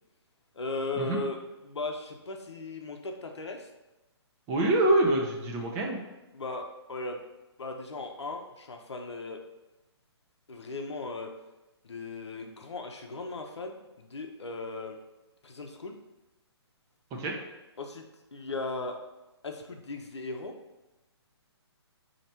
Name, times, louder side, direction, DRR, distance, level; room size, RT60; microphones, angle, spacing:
voice 1, 0.5-1.4 1.6-3.7 5.8-5.9 6.3-7.2 7.6-9.4 10.5-11.3 11.8-15.0 15.4-15.9 17.8-18.0 18.3-19.0 19.4-20.5, left 3 dB, 80° left, 3 dB, 0.7 m, -37 dB
voice 2, 4.5-6.0 17.1-17.4, right 1 dB, 20° right, -1 dB, 0.7 m, -25 dB
4.2 x 2.9 x 4.2 m, 1.0 s
figure-of-eight pair, 140°, 14 cm